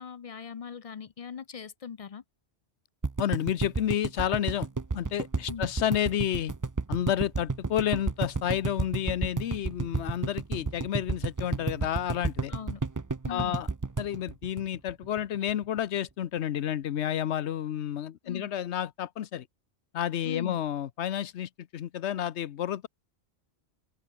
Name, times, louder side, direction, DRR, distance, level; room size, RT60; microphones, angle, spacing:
voice 1, 0.0-2.2 5.5-5.7 12.5-12.8 13.3-13.6 18.2-18.5 20.2-20.6, left 7 dB, 45° left, 0.5 m, -40 dB
sound 1, 3.0-15.2 15.5-15.6 15.8-15.9, right 3 dB, 25° right, 0.5 m, -31 dB
voice 2, 3.2-4.7 4.9-6.5 6.9-12.5 13.3-13.7 14.0-19.5 19.9-22.9, left 10 dB, 90° left, 1.0 m, -30 dB
open air
omnidirectional pair, 1.1 m